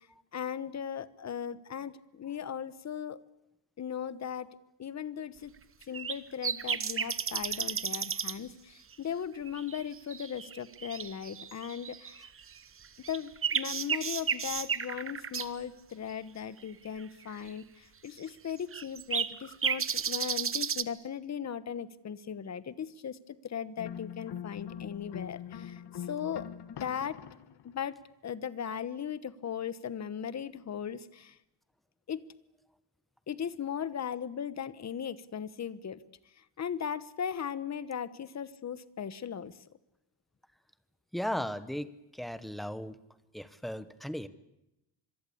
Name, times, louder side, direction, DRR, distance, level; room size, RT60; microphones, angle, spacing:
voice 1, 0.3-3.2 3.8-5.5 5.9-12.3 13.1-25.8 26.1-26.5 26.8-27.2 27.6-28.0 28.2-31.4 32.1-32.2 33.3-36.0 36.6-39.5, left 8 dB, 40° left, 15 dB, 1.1 m, -38 dB
sound 1, 5.8-6.2 6.4-8.4 8.9-9.0 9.5-12.4 12.8-15.5 17.5-17.6 18.2-18.3 18.7-20.8, right 7 dB, 30° right, 1.0 m, -33 dB
sound 2, 23.8-27.8, left 9 dB, 65° left, 1.4 m, -42 dB
voice 2, 41.1-41.9 42.1-43.0 43.3-44.3, equal, ahead, 13 dB, 1.1 m, -36 dB
26.0 x 22.5 x 8.5 m, 0.89 s
wide cardioid pair, 165°, 42 cm